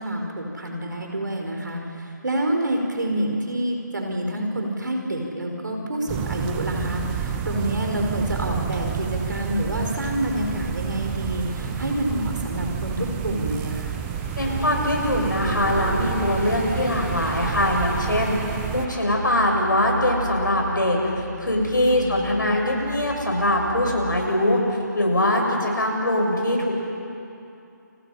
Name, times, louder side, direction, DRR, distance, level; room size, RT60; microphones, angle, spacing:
voice 1, 0.0-14.0 21.9-22.1, right 1 dB, 70° right, 2 dB, 5.0 m, -27 dB
sound 1, 6.1-18.9, right 9 dB, 15° right, 1.0 m, -30 dB
Truck / Idling, 6.5-24.2, right 2 dB, 40° right, 7.4 m, -36 dB
voice 2, 14.4-18.3 18.7-26.8, left 1 dB, 75° left, 1 dB, 7.4 m, -22 dB
29.5 x 27.0 x 5.8 m, 2.7 s
figure-of-eight pair, 155°, 10 cm